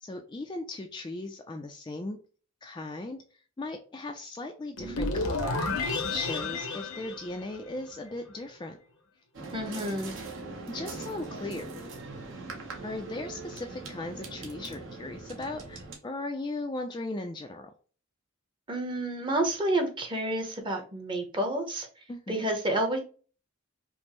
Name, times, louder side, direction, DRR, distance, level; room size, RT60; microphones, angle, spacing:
voice 1, 0.0-2.2 2.6-3.2 3.6-5.7 6.1-8.8 10.7-11.7 12.8-17.7 22.1-22.5, left 2 dB, 20° left, 4 dB, 0.3 m, -37 dB
sound 1, 4.8-8.0, left 3 dB, 85° left, 0.9 m, -31 dB
sound 2, 9.3-16.0, right 3 dB, 65° right, 1.0 m, -41 dB
voice 2, 9.5-10.1 18.7-21.9 22.3-23.0, right 1 dB, 25° right, 3 dB, 0.8 m, -29 dB
5.1 x 2.0 x 2.9 m, 0.38 s
head